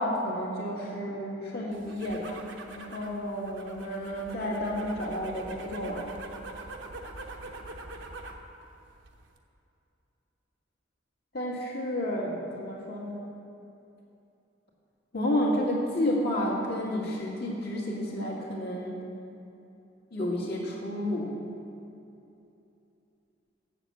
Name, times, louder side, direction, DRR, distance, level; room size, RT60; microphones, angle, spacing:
voice 1, 0.0-6.1 11.3-13.3 15.1-19.0 20.1-21.4, left 1 dB, 55° left, -4 dB, 1.9 m, -31 dB
sound 1, 1.7-8.5 8.8-9.4, right 2 dB, 70° right, 0.8 m, -44 dB
7.7 x 7.3 x 7.3 m, 2.8 s
head